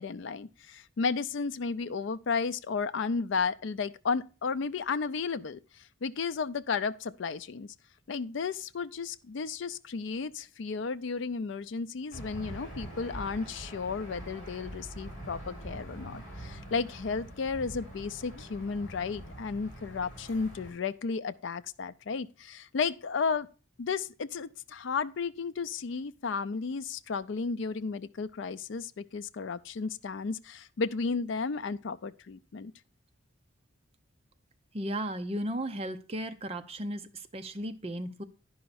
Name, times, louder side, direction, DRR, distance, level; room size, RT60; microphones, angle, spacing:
voice 1, 0.0-7.7 8.1-23.5 23.8-32.7, left 5 dB, 65° left, 0.4 m, -33 dB
Aircraft / Engine, 12.1-20.7, right 1 dB, 40° left, 4.5 m, -44 dB
voice 2, 34.7-38.2, right 1 dB, 30° right, 0.6 m, -35 dB
10.5 x 5.6 x 4.1 m
head